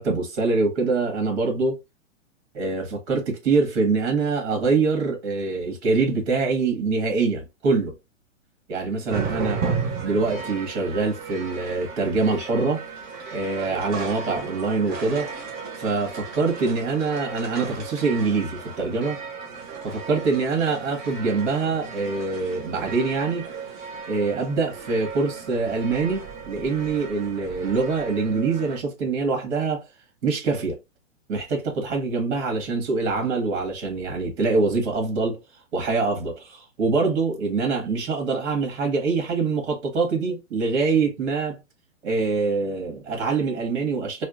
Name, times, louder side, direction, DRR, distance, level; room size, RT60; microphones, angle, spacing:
voice 1, 0.0-1.8 2.5-7.9 8.7-9.6 10.0-12.8 13.3-15.3 15.8-19.2 19.8-23.5 24.1-29.8 30.2-30.8 31.3-35.4 35.7-41.6 42.0-44.2, right 4 dB, 60° right, 1.9 m, -24 dB
sound 1, 9.1-28.8, right 5 dB, 25° right, 0.9 m, -35 dB
4.2 x 2.4 x 2.5 m
hypercardioid pair, 120°, 39 cm